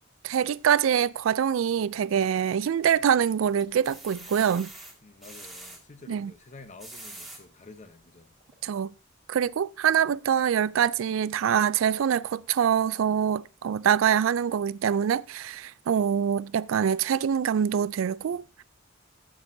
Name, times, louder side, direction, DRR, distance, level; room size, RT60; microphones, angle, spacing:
voice 1, 0.2-4.7 6.1-6.3 8.6-8.9 9.3-18.4, right 8 dB, 75° right, 0.3 m, -24 dB
sound 1, 2.9-3.1 3.6-5.8 6.6-7.4 8.0-8.1 8.5-8.6, right 2 dB, ahead, 1.9 m, -45 dB
voice 2, 5.0-8.3 18.3-18.4, left 3 dB, 35° left, 0.9 m, -49 dB
15.0 x 6.2 x 2.7 m
head